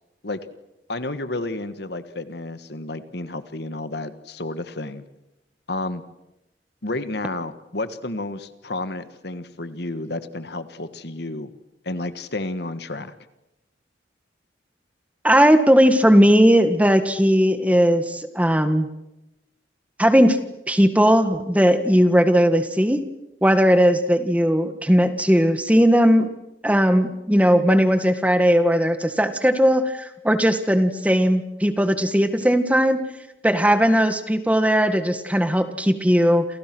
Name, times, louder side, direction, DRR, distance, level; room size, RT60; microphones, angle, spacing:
voice 1, 0.9-5.0 5.7-6.0 6.8-11.5 11.8-13.1, left 2 dB, 60° left, 11 dB, 1.7 m, -31 dB
voice 2, 15.2-18.9 20.0-20.4 20.7-23.0 23.4-26.3 26.6-33.0 33.4-36.5, equal, 10° right, 9 dB, 1.7 m, -18 dB
29.5 x 28.5 x 6.2 m, 0.93 s
head